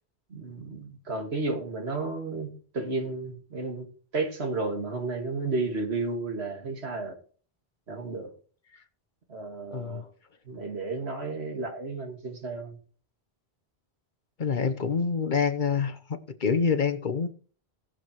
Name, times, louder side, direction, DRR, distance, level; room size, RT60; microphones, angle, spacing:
voice 1, 0.3-7.2 7.9-8.3 9.3-10.0 10.5-12.8, right 3 dB, 80° right, 2.3 m, -32 dB
voice 2, 9.7-10.1 14.4-17.3, left 5 dB, 50° left, 1.0 m, -27 dB
18.5 x 7.5 x 3.1 m
omnidirectional pair, 1.1 m